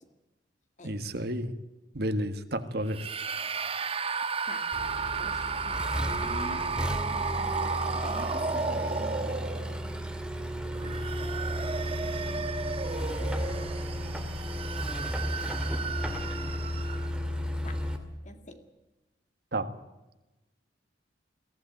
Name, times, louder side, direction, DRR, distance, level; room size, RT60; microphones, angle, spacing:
voice 1, 0.8-1.5 1.9-3.0 19.5-19.7, right 1 dB, 55° right, 10 dB, 1.6 m, -31 dB
sound 1, 2.9-9.9 10.6-17.2, right 5 dB, 30° right, 1.2 m, -34 dB
voice 2, 4.4-6.8 7.1-9.4 10.4-11.3 11.8-12.5 17.6-17.8 18.2-18.6, left 2 dB, 40° left, 7 dB, 2.2 m, -47 dB
Accelerating revving vroom, 4.7-18.0, equal, 5° right, 2.2 m, -33 dB
22.5 x 15.5 x 9.2 m, 1.0 s
head